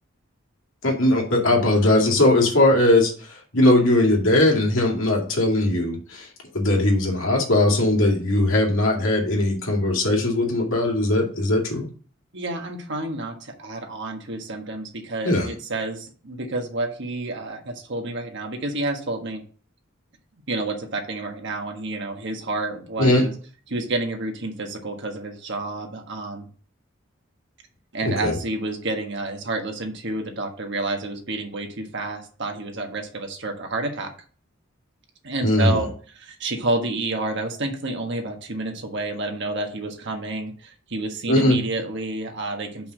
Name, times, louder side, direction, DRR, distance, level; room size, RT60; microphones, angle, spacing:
voice 1, 0.8-3.1 3.5-6.3 6.5-11.9 15.2-15.5 23.0-23.2 28.2-28.4 35.4-35.8 41.3-41.6, left 1 dB, 80° left, 0 dB, 2.3 m, -19 dB
voice 2, 12.3-19.4 20.5-23.3 23.7-26.5 27.9-34.1 35.2-42.9, right 2 dB, 65° right, 4 dB, 1.5 m, -29 dB
5.5 x 4.7 x 6.3 m, 0.42 s
head